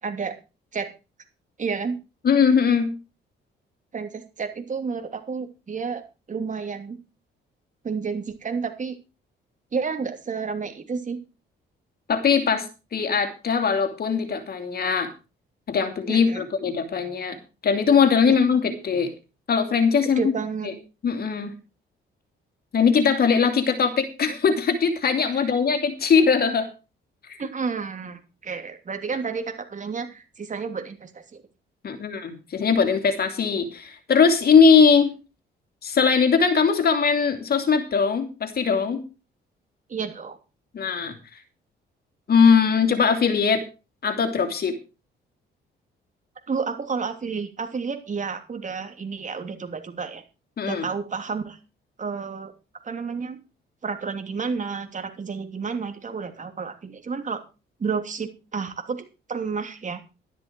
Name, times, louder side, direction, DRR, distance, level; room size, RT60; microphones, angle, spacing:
voice 1, 0.0-0.3 0.7-0.9 1.6-2.0 3.9-6.0 6.3-7.0 7.8-9.0 9.7-11.2 16.1-16.4 18.2-18.8 20.2-20.7 25.4-25.5 27.4-31.4 39.9-40.4 46.5-50.2 50.6-51.6 52.0-52.5 52.8-53.4 53.8-57.4 57.8-60.0, right 5 dB, 40° right, 6 dB, 3.0 m, -31 dB
voice 2, 2.2-2.9 12.1-12.7 12.9-15.1 15.7-17.4 17.6-19.1 19.5-20.3 20.6-20.7 21.0-21.5 22.7-26.7 27.3-27.4 31.8-35.1 35.8-39.0 40.7-41.1 42.3-43.6 44.0-44.7 50.6-50.9, left 6 dB, 50° left, 8 dB, 2.8 m, -20 dB
12.5 x 11.0 x 4.6 m, 0.31 s
cardioid pair, 90°, 20 cm